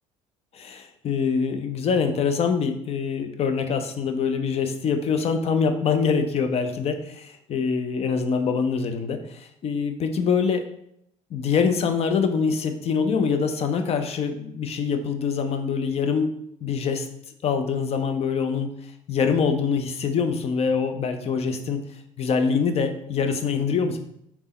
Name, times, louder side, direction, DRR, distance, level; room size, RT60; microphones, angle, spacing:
voice 1, 0.5-10.7 11.3-16.3 16.6-17.1 17.4-18.7 19.1-21.8 22.2-24.0, left 5 dB, 35° left, 7 dB, 0.6 m, -24 dB
3.5 x 3.0 x 4.1 m, 0.73 s
hypercardioid pair, 65°, 17 cm